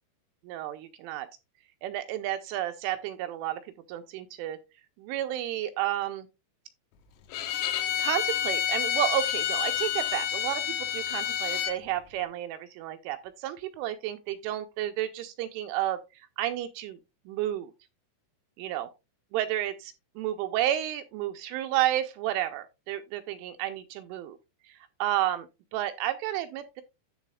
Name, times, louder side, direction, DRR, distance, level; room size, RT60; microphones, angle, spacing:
voice 1, 0.4-1.3 1.8-3.6 3.9-4.6 5.0-6.3 8.0-17.0 17.3-17.7 18.6-18.9 19.3-24.4 24.6-26.8, right 13 dB, 85° right, 3.0 m, -31 dB
Bowed string instrument, 7.3-11.8, left 10 dB, 85° left, 3.7 m, -29 dB
13.0 x 5.5 x 2.3 m
omnidirectional pair, 5.8 m